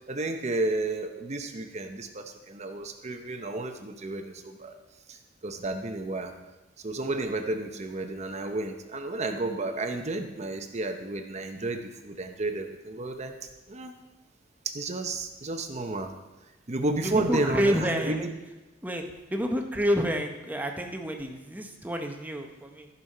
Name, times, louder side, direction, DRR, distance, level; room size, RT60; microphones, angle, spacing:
voice 1, 0.1-4.7 5.1-5.2 5.4-6.3 6.8-13.3 13.7-13.9 14.6-16.1 16.7-18.3, right 2 dB, 35° right, 6 dB, 0.8 m, -32 dB
voice 2, 17.0-18.3 18.8-19.0 19.3-22.9, equal, 10° right, 3 dB, 0.9 m, -29 dB
14.0 x 5.5 x 5.5 m, 1.1 s
head